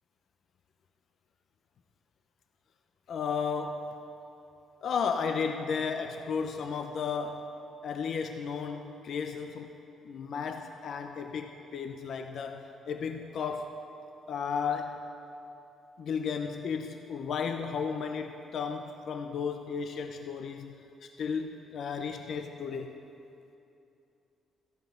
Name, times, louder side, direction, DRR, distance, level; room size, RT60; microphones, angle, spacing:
voice 1, 3.1-3.9 4.8-7.5 7.8-9.7 10.0-13.7 14.3-15.0 16.0-20.8 21.2-23.0, left 6 dB, 60° left, 6 dB, 0.7 m, -34 dB
14.0 x 10.5 x 7.8 m, 2.8 s
cardioid pair, 90°, 0 cm